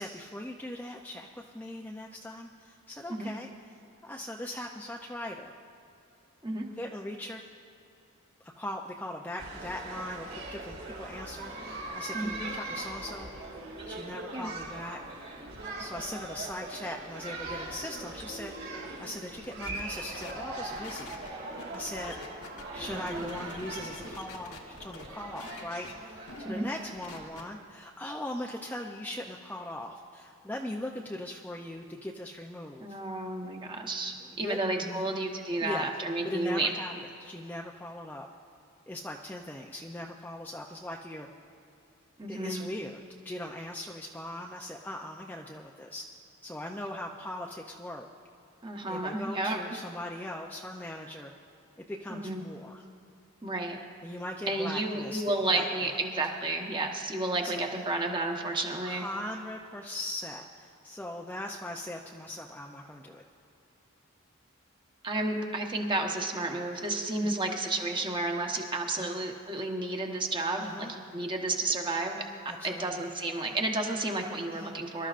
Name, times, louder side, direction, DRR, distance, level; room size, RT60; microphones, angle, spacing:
voice 1, 0.0-3.5 4.0-5.5 6.7-7.4 8.6-13.3 13.9-15.2 15.8-21.2 21.7-22.2 22.7-33.0 34.2-35.1 35.6-35.9 36.2-36.9 37.2-38.3 38.9-41.3 42.3-46.1 46.4-48.1 48.9-51.3 51.8-52.8 54.0-56.0 57.4-57.6 58.8-63.2 67.2-67.4 69.0-69.2 70.6-70.9 72.5-72.9 74.5-74.7, left 1 dB, 10° left, 0 dB, 0.5 m, -40 dB
sound 1, 9.4-27.3, right 2 dB, 55° right, 2.8 m, -41 dB
sound 2, 19.4-25.1 25.3-25.9 26.3-26.4 26.7-27.4, left 3 dB, 80° left, 1.4 m, -46 dB
voice 2, 22.9-23.4 26.5-26.7 32.8-36.7 42.2-42.7 48.6-49.6 52.1-52.4 53.4-53.8 54.5-59.0 65.0-72.2 72.6-75.1, right 2 dB, 20° right, 2 dB, 1.1 m, -31 dB
24.0 x 12.5 x 2.5 m, 2.7 s
head